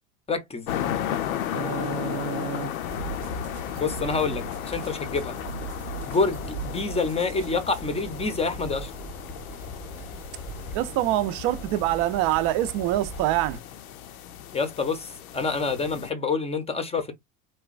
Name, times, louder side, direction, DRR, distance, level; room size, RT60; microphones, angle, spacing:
voice 1, 0.3-0.7 3.8-5.3 6.0-8.9 14.5-17.1, left 4 dB, 15° left, 0.6 m, -27 dB
sound 1, 0.7-16.1, left 10 dB, 90° left, 0.6 m, -35 dB
voice 2, 1.5-2.7 10.7-13.6, right 14 dB, 50° right, 0.5 m, -26 dB
sound 2, 2.8-13.6, right 1 dB, 5° right, 1.0 m, -40 dB
sound 3, 2.9-7.8, right 7 dB, 75° right, 0.8 m, -41 dB
3.0 x 2.2 x 2.4 m
supercardioid pair, 105°, 41 cm